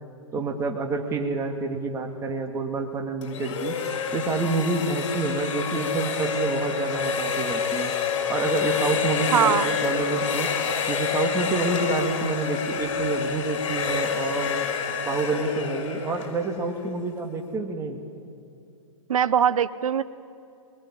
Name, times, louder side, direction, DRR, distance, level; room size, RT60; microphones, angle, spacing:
voice 1, 0.3-3.7 4.1-7.9 8.3-10.5 10.9-14.7 15.0-18.0, right 3 dB, 15° right, 3 dB, 2.2 m, -28 dB
sound 1, 3.2-17.1, left 6 dB, 60° left, 5.0 m, -28 dB
voice 2, 9.3-9.7 19.1-20.0, right 8 dB, 80° right, 14 dB, 0.9 m, -21 dB
25.5 x 20.5 x 10.0 m, 2.5 s
hypercardioid pair, 140°, 18 cm